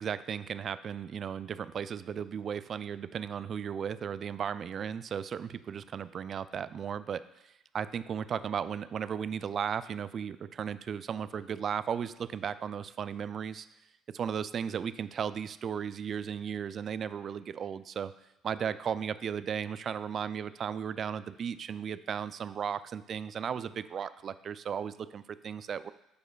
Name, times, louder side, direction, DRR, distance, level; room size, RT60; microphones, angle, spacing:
voice 1, 0.0-13.7 14.1-18.1 18.4-25.9, right 7 dB, 50° right, 14 dB, 0.3 m, -35 dB
13.0 x 4.9 x 2.3 m, 0.85 s
hypercardioid pair, 55°, 0 cm